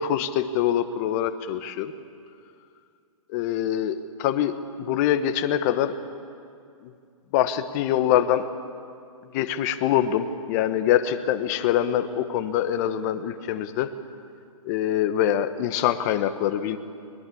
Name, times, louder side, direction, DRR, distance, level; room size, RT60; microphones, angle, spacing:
voice 1, 0.0-1.9 3.3-5.9 6.8-6.9 7.3-8.5 9.3-13.9 14.6-16.8, left 10 dB, 30° left, 10 dB, 1.1 m, -24 dB
21.5 x 21.0 x 8.5 m, 2.3 s
hypercardioid pair, 155°, 18 cm